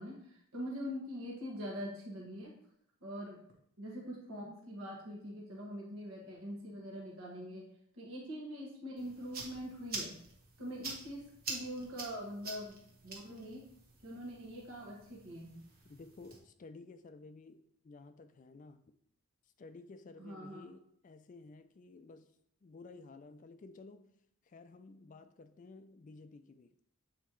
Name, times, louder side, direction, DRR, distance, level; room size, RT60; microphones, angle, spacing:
voice 1, 0.0-2.5 3.0-3.4 3.8-7.7 7.9-10.2 10.6-13.6 14.0-15.6 20.2-20.6, equal, 70° right, -3 dB, 1.5 m, -43 dB
sound 1, 9.0-16.4, right 3 dB, 40° right, 1.3 m, -47 dB
voice 2, 15.8-18.8 19.4-22.3 22.6-24.1 24.4-26.7, left 3 dB, 35° left, 10 dB, 0.3 m, -54 dB
8.2 x 4.3 x 3.1 m, 0.70 s
head